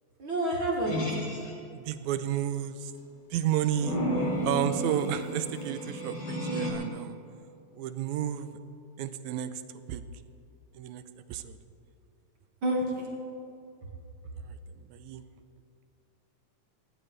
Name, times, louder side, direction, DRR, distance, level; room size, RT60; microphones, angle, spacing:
voice 1, 0.2-1.0 4.0-4.3 12.6-13.1, right 1 dB, 45° right, -2 dB, 2.2 m, -29 dB
sound 1, 0.9-1.5 3.7-6.7, equal, 35° left, 3.1 m, -32 dB
voice 2, 1.7-2.9 3.3-4.0 4.4-7.2 7.7-8.6 9.0-9.5 9.9-10.0 10.7-11.0 11.3-11.6 14.4-15.2, right 10 dB, 80° right, 11 dB, 1.9 m, -31 dB
19.5 x 16.0 x 3.3 m, 2.5 s
omnidirectional pair, 3.6 m